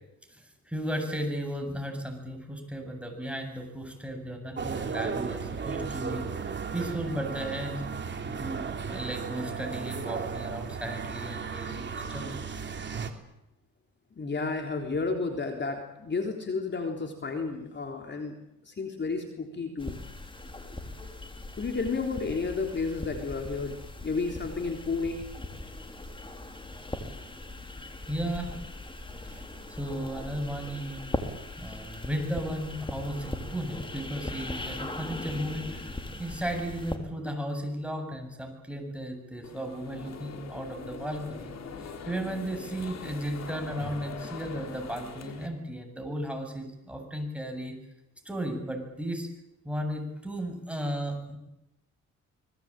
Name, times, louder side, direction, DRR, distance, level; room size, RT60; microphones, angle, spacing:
voice 1, 0.3-7.9 8.2-12.4 28.1-28.6 29.2-29.4 29.7-31.2 31.6-41.5 41.8-47.7 48.2-49.3 49.6-51.4, equal, 5° right, 4 dB, 7.7 m, -35 dB
sound 1, 4.6-13.1, right 5 dB, 35° right, 3.3 m, -35 dB
voice 2, 14.2-18.4 18.6-20.0 21.6-25.3, left 4 dB, 35° left, 4 dB, 3.6 m, -32 dB
sound 2, 19.8-37.0, left 2 dB, 15° left, 3.8 m, -39 dB
sound 3, 39.4-45.5, left 6 dB, 60° left, 4.2 m, -42 dB
26.0 x 20.5 x 9.0 m, 0.87 s
cardioid pair, 90°, 30 cm